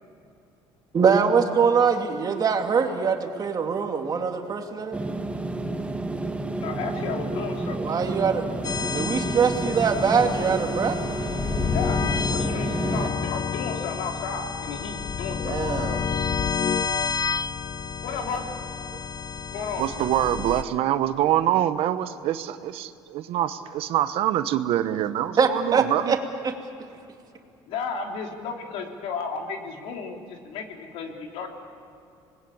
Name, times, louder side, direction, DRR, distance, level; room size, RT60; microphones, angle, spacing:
voice 1, 0.9-5.0 7.8-8.4 8.9-11.0 15.4-16.1 25.4-26.2 26.4-26.5, right 6 dB, 40° right, 4 dB, 2.7 m, -23 dB
sound 1, 4.9-13.1, right 2 dB, 10° right, 1.4 m, -30 dB
voice 2, 6.6-7.8 11.7-15.5 18.0-18.6 19.5-19.8 27.7-31.5, left 5 dB, 75° left, 2 dB, 3.4 m, -33 dB
sound 2, 8.6-20.6, left 6 dB, 40° left, 0.9 m, -29 dB
voice 3, 19.8-26.1, right 12 dB, 70° right, 12 dB, 1.1 m, -25 dB
26.0 x 21.0 x 8.6 m, 2.6 s
supercardioid pair, 95°, 10 cm